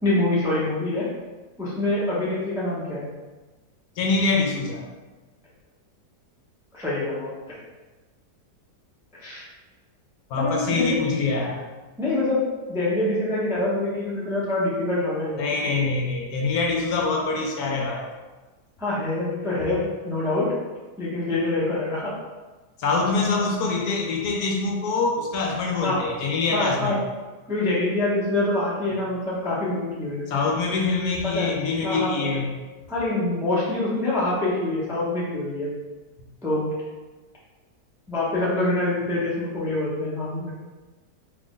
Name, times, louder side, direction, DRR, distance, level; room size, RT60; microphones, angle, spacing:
voice 1, 0.0-1.1 1.6-3.1 6.7-7.3 9.1-9.4 10.4-11.0 12.0-12.4 12.7-15.8 18.8-20.5 21.0-22.1 25.8-26.0 26.5-27.0 27.5-30.5 31.3-31.5 31.8-32.3 32.9-35.7 36.4-36.7 38.1-40.5, left 2 dB, 5° right, -8 dB, 0.3 m, -25 dB
voice 2, 4.0-4.8 10.3-11.6 15.4-18.0 22.8-27.0 30.3-32.5 36.2-36.3, left 4 dB, 70° left, 0 dB, 1.0 m, -24 dB
3.2 x 2.5 x 3.6 m, 1.2 s
omnidirectional pair, 1.8 m